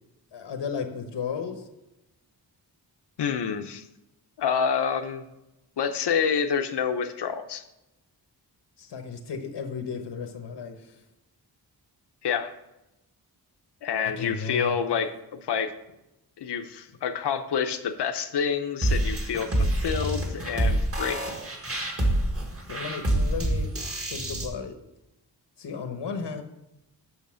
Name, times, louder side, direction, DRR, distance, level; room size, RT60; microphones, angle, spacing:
voice 1, 0.3-1.6 8.8-10.8 14.2-14.7 22.7-23.7 24.1-24.8 25.6-26.4, left 6 dB, 90° left, 6 dB, 1.1 m, -34 dB
voice 2, 3.2-3.8 4.4-5.3 5.8-7.6 12.2-12.5 13.8-15.7 16.4-21.2, left 7 dB, 75° left, 7 dB, 0.8 m, -28 dB
sound 1, 18.8-24.5, right 1 dB, 35° right, 1.6 m, -26 dB
8.1 x 6.4 x 6.3 m, 0.91 s
wide cardioid pair, 175°, 41 cm